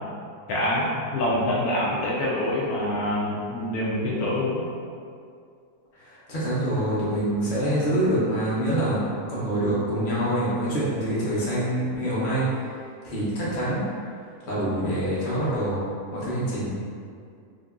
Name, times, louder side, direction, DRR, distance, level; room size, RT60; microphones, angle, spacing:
voice 1, 0.5-0.9 1.1-4.6, left 1 dB, 75° left, -6 dB, 1.1 m, -25 dB
voice 2, 5.9-12.5 13.0-13.8 14.5-15.8 16.1-16.8, right 1 dB, 40° left, -9 dB, 0.9 m, -25 dB
2.9 x 2.7 x 3.5 m, 2.3 s
omnidirectional pair, 1.6 m